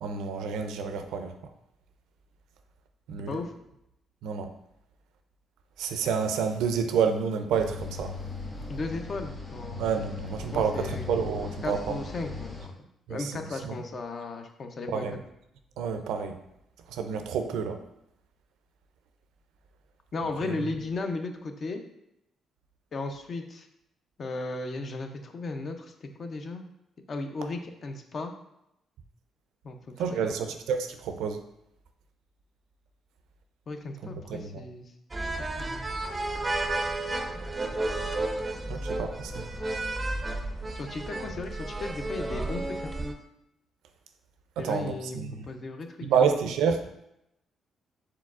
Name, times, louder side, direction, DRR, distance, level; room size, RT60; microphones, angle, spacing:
voice 1, 0.0-1.3 3.1-3.4 4.2-4.5 5.8-8.1 9.8-12.0 13.1-13.7 14.9-15.2 15.8-16.4 16.9-17.8 20.4-20.7 30.0-31.4 34.3-34.6 38.7-39.5 44.6-45.5 46.0-46.8, right 6 dB, 85° right, 7 dB, 0.4 m, -29 dB
sound 1, 7.5-12.7, left 3 dB, 20° left, 1.5 m, -38 dB
voice 2, 8.7-9.9 10.5-11.1 11.6-15.2 20.1-21.8 22.9-23.7 24.2-26.6 27.1-28.3 29.6-30.4 33.7-34.9 35.5-35.9 40.7-42.9 44.6-46.2, left 3 dB, 45° left, 5 dB, 0.6 m, -36 dB
sound 2, 35.1-43.1, right 2 dB, 20° right, 0.4 m, -32 dB
4.7 x 4.0 x 2.4 m, 0.81 s
cardioid pair, 90°, 0 cm